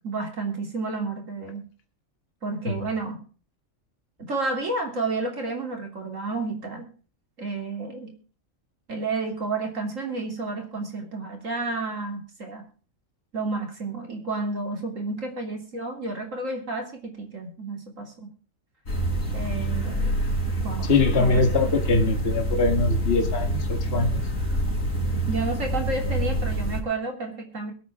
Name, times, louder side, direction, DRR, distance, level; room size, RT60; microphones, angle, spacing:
voice 1, 0.0-1.6 2.4-3.2 4.2-6.9 7.4-8.1 8.9-12.6 13.3-18.3 19.3-20.2 20.6-20.9 21.2-21.5 25.3-27.7, right 3 dB, 70° right, 2 dB, 3.6 m, -31 dB
sound 1, 18.9-26.8, right 1 dB, 80° left, 4.3 m, -26 dB
voice 2, 20.9-24.2, left 3 dB, 50° left, 5 dB, 1.9 m, -23 dB
22.5 x 8.5 x 3.6 m, 0.38 s
omnidirectional pair, 1.4 m